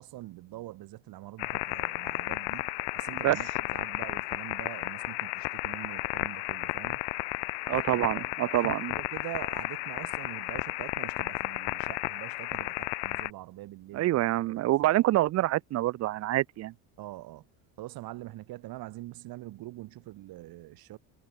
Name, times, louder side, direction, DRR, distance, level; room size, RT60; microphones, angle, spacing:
voice 1, 0.0-7.0 7.9-14.1 14.4-14.7 17.0-17.5 17.8-21.0, right 17 dB, 60° right, 4.7 m, -44 dB
sound 1, 1.4-13.3, left 26 dB, 85° left, 1.4 m, -33 dB
voice 2, 7.7-8.9 13.9-16.7, right 15 dB, 40° right, 0.5 m, -26 dB
cardioid pair, 170°, 41 cm